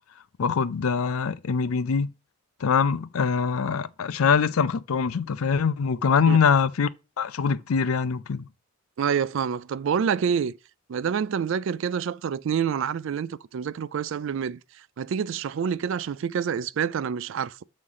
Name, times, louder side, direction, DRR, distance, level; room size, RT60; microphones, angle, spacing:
voice 1, 0.4-2.1 2.6-6.9 7.2-8.5, left 6 dB, 70° left, 0.5 m, -23 dB
voice 2, 9.0-10.5 10.9-17.6, right 7 dB, 60° right, 0.3 m, -27 dB
7.7 x 3.2 x 5.5 m
head